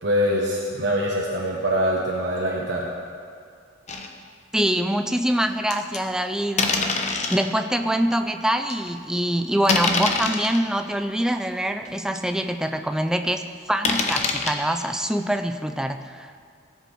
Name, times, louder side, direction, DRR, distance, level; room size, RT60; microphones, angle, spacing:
voice 1, 0.0-2.9, equal, 65° right, -3 dB, 1.2 m, -24 dB
sound 1, 3.9-4.1 4.6-4.7 5.7-6.0 6.6-7.4 8.1-8.2 8.7-8.9 9.6-10.6 11.3-11.4 11.8-11.9 12.2-12.3 13.8-14.5, left 4 dB, 35° left, 0.8 m, -24 dB
voice 2, 4.5-7.0 7.3-16.3, right 1 dB, 5° right, 7 dB, 0.4 m, -24 dB
17.0 x 7.7 x 4.8 m, 2.3 s
head